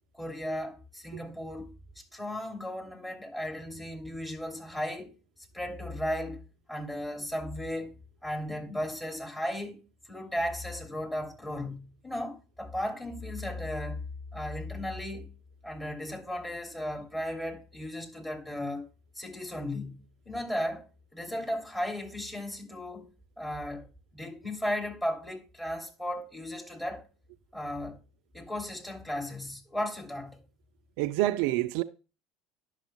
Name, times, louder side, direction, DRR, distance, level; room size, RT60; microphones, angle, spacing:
voice 1, 0.1-1.7 1.9-5.1 5.5-7.9 8.2-9.8 10.1-14.1 14.3-15.3 15.6-18.9 19.1-23.1 23.4-27.0 27.5-28.0 28.3-30.4, left 1 dB, 15° left, 2.9 m, -35 dB
voice 2, 31.0-31.8, right 16 dB, 60° right, 0.4 m, -27 dB
11.5 x 6.2 x 2.3 m
figure-of-eight pair, 70°, 0 cm